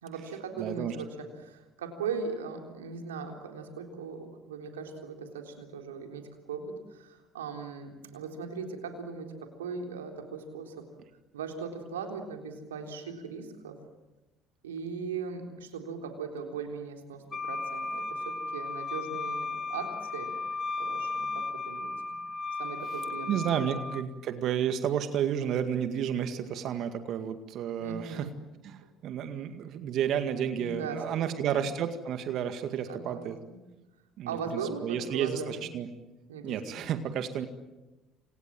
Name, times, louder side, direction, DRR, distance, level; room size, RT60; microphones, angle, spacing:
voice 1, 0.0-10.9 11.3-13.8 14.6-20.3 20.8-22.2 22.6-23.8 27.8-28.3 30.5-31.6 32.9-33.6 34.3-35.7 36.3-36.8, right 5 dB, 85° right, 4 dB, 3.8 m, -39 dB
voice 2, 0.6-1.0 23.3-28.3 28.6-33.4 34.2-35.9 36.4-37.5, right 9 dB, 55° right, 9 dB, 2.0 m, -31 dB
Wind instrument woodwind instrument, 17.3-24.1, left 3 dB, 30° left, 2.0 m, -35 dB
29.0 x 26.0 x 7.5 m, 1.1 s
hypercardioid pair, 60°, 0 cm